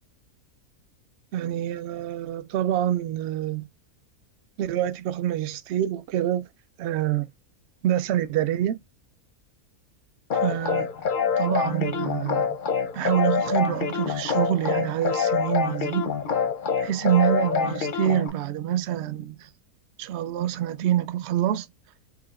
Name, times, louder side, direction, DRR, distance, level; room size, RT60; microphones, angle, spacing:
voice 1, 1.3-3.7 4.6-6.5 6.8-7.3 7.8-8.8 10.3-10.9 11.4-12.5 12.9-16.2 16.8-19.5 20.0-21.7, right 11 dB, 70° right, 0.6 m, -26 dB
sound 1, 10.3-18.3, left 6 dB, 55° left, 0.5 m, -26 dB
4.8 x 2.8 x 2.3 m
omnidirectional pair, 1.6 m